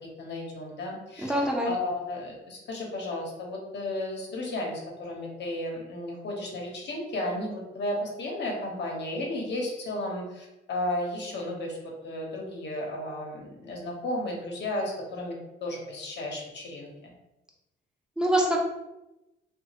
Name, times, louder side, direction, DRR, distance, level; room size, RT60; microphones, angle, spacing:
voice 1, 0.2-15.4 15.6-17.1, left 1 dB, 60° left, -1 dB, 1.0 m, -34 dB
voice 2, 1.2-1.7 18.2-18.6, right 1 dB, 5° right, -1 dB, 0.7 m, -24 dB
2.8 x 2.4 x 2.9 m, 0.95 s
cardioid pair, 90°, 20 cm